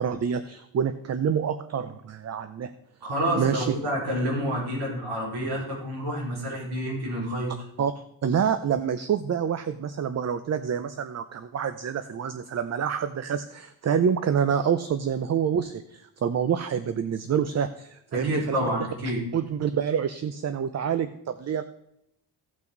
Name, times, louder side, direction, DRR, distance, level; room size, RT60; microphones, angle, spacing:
voice 1, 0.0-2.7 3.2-3.7 7.8-7.9 8.2-18.7 19.3-21.6, right 7 dB, 40° right, 11 dB, 0.6 m, -27 dB
voice 2, 3.0-7.5 18.1-19.2, equal, 65° right, -5 dB, 4.8 m, -28 dB
16.5 x 5.9 x 3.9 m, 0.79 s
cardioid pair, 135°, 42 cm